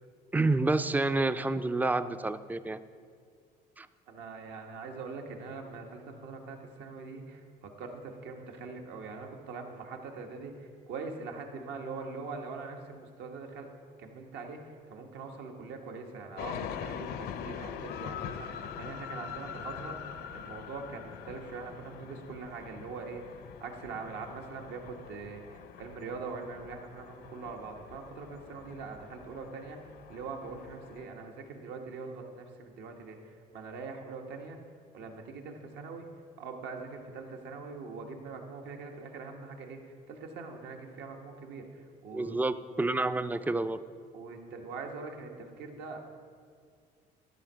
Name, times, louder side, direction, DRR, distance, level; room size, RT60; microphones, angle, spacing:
voice 1, 0.3-2.8 3.8-3.9 42.1-43.8, right 2 dB, 10° right, 13 dB, 0.3 m, -29 dB
voice 2, 4.1-20.0 20.3-34.6 34.9-36.1 36.4-42.5 44.1-46.0, right 4 dB, 80° right, 3 dB, 1.2 m, -43 dB
sound 1, 16.4-31.0, left 8 dB, 70° left, 0.5 m, -43 dB
12.0 x 4.5 x 6.1 m, 2.1 s
cardioid pair, 110°, 17 cm